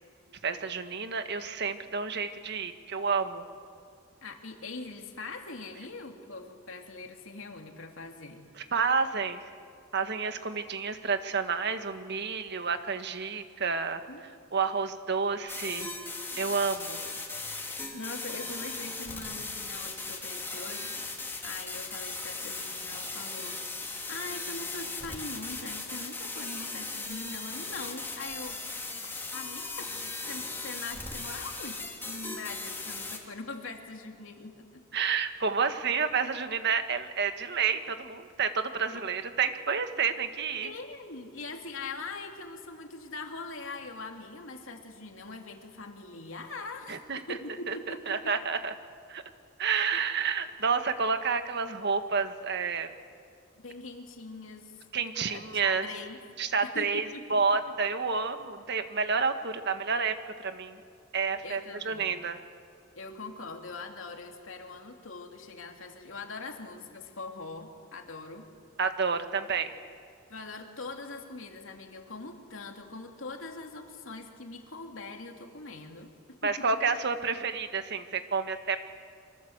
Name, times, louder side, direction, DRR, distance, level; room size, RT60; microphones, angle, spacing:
voice 1, 0.4-3.4 8.7-9.4 9.9-14.0 14.5-15.9 16.4-17.0 34.9-40.7 46.9-47.2 47.7-47.8 48.1-48.7 49.1-49.2 49.6-52.9 54.9-55.9 56.4-60.8 61.1-62.4 68.8-69.7 76.4-78.8, right 5 dB, 60° right, 8 dB, 1.6 m, -29 dB
voice 2, 4.2-8.4 14.1-14.2 17.9-23.8 24.1-28.6 29.3-29.9 30.3-34.8 38.9-39.0 40.6-48.3 49.9-50.0 53.6-54.8 55.1-56.2 56.6-57.4 61.4-62.1 62.9-68.4 70.3-76.7, left 3 dB, 90° left, 3 dB, 2.8 m, -42 dB
sound 1, 15.5-33.2, left 3 dB, 10° left, 3.0 m, -38 dB
27.0 x 24.5 x 8.0 m, 2.2 s
head